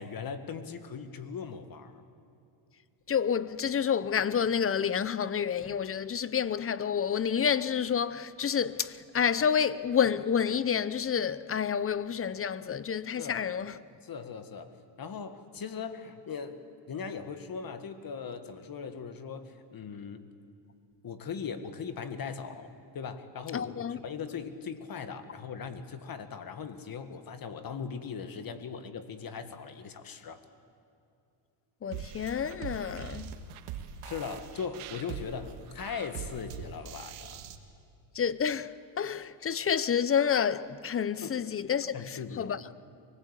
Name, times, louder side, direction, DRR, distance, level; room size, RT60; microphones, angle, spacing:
voice 1, 0.0-2.0 13.2-13.4 14.0-20.2 21.0-30.4 34.0-37.4 41.2-41.4 41.9-42.5, left 6 dB, 45° left, 1.9 m, -39 dB
voice 2, 3.1-13.7 23.5-24.0 31.8-33.3 38.1-42.6, left 7 dB, 25° left, 0.8 m, -29 dB
sound 1, 31.9-37.6, right 8 dB, 80° right, 1.8 m, -42 dB
24.5 x 19.5 x 8.4 m
cardioid pair, 90°, 50 cm